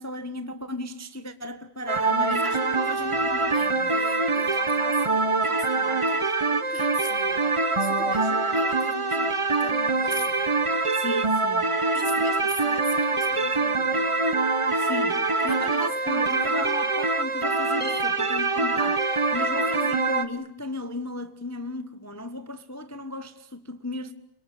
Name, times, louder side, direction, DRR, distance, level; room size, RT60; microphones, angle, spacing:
voice 1, 0.0-3.9 11.0-11.7 14.8-24.1, left 1 dB, 10° left, 0.9 m, -35 dB
sound 1, 1.9-20.2, right 3 dB, 20° right, 0.9 m, -24 dB
voice 2, 2.3-10.8 11.9-14.1 15.4-16.1, left 3 dB, 25° left, 3.6 m, -41 dB
29.0 x 23.5 x 8.6 m
omnidirectional pair, 2.3 m